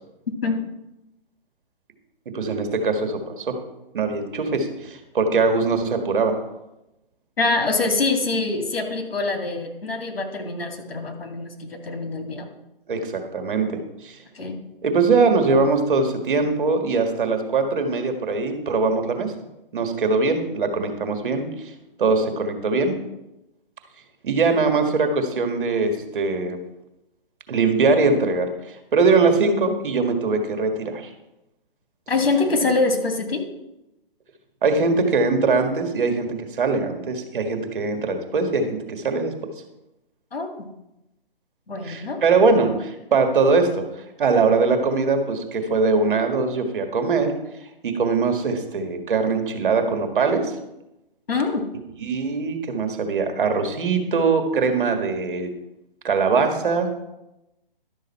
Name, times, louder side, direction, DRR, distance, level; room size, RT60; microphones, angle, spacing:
voice 1, 2.3-3.6 3.9-6.4 12.9-14.2 14.8-19.3 19.7-21.7 22.0-23.0 24.2-26.6 27.5-31.1 34.6-39.3 41.8-43.8 44.2-47.3 47.8-50.5 52.0-55.5 56.0-56.9, right 4 dB, 60° right, 6 dB, 1.7 m, -21 dB
voice 2, 7.4-12.5 14.3-14.6 32.1-33.4 40.3-40.5 41.7-42.2 51.3-51.6, left 3 dB, 85° left, 4 dB, 2.1 m, -24 dB
12.0 x 6.4 x 4.3 m, 0.93 s
hypercardioid pair, 150°, 29 cm